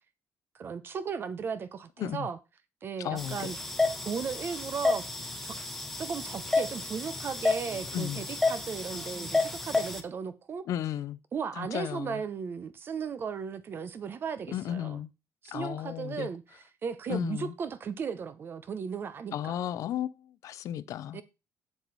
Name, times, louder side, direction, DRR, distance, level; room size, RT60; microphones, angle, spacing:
voice 1, 0.5-2.4 2.8-3.6 4.0-5.1 5.4-5.5 6.0-10.7 11.3-15.0 15.4-19.5 21.1-21.2, right 6 dB, 40° right, 0.9 m, -36 dB
voice 2, 3.0-3.6 7.9-8.2 10.7-11.2 11.6-12.2 14.5-15.1 15.5-16.3 17.1-17.5 19.3-21.2, left 11 dB, 65° left, 0.5 m, -34 dB
sound 1, 3.2-10.0, left 3 dB, 5° left, 1.1 m, -31 dB
7.8 x 7.0 x 4.1 m
cardioid pair, 155°, 6 cm